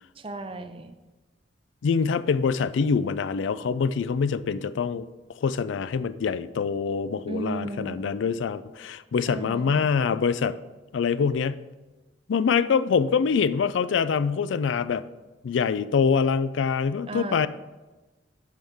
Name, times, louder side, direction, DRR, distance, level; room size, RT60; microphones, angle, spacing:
voice 1, 0.2-1.0 7.3-8.0 9.3-9.8 17.1-17.5, right 2 dB, 30° right, 8 dB, 0.6 m, -35 dB
voice 2, 1.8-5.1 5.4-10.5 10.9-11.7 12.3-15.0 15.4-17.5, left 6 dB, 85° left, 15 dB, 0.4 m, -25 dB
11.5 x 5.6 x 3.5 m, 1.1 s
head